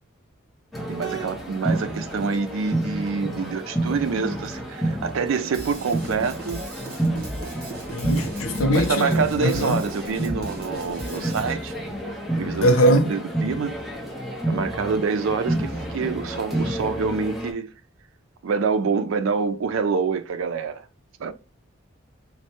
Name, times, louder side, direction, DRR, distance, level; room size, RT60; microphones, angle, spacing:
sound 1, 0.7-17.5, right 1 dB, ahead, 0.7 m, -30 dB
voice 1, 0.9-6.7 8.7-11.7 12.3-13.7 14.5-17.7 18.4-20.8 21.2-21.3, right 5 dB, 70° right, 0.4 m, -26 dB
Drum kit / Drum, 5.5-11.5, right 1 dB, 45° right, 1.0 m, -37 dB
voice 2, 7.9-9.8 12.6-13.1, equal, 80° left, 0.6 m, -21 dB
3.1 x 2.1 x 2.9 m
head